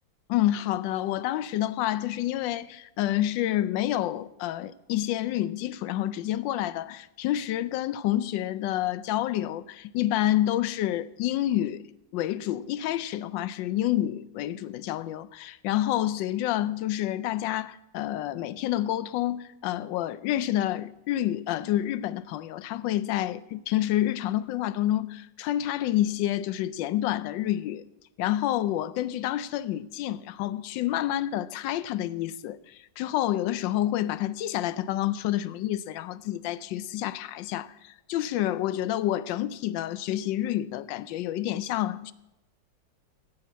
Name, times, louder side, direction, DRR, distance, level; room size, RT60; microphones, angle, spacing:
voice 1, 0.3-11.8 12.1-27.8 28.2-42.1, left 13 dB, 85° left, 1.3 m, -28 dB
8.7 x 7.8 x 9.1 m
omnidirectional pair, 2.0 m